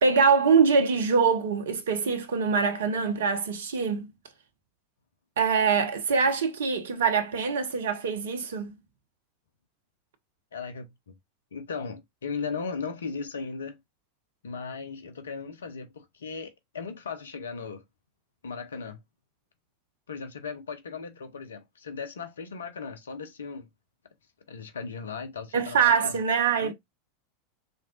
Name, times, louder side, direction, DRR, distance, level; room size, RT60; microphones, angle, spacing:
voice 1, 0.0-4.1 5.4-8.7 25.5-26.7, right 5 dB, 65° right, 1.0 m, -24 dB
voice 2, 10.5-11.1 11.5-13.8 14.4-17.8 18.4-19.0 20.1-23.7 24.5-26.2 26.6-26.7, left 5 dB, 70° left, 0.9 m, -37 dB
5.3 x 3.6 x 2.3 m
figure-of-eight pair, 85°, 0 cm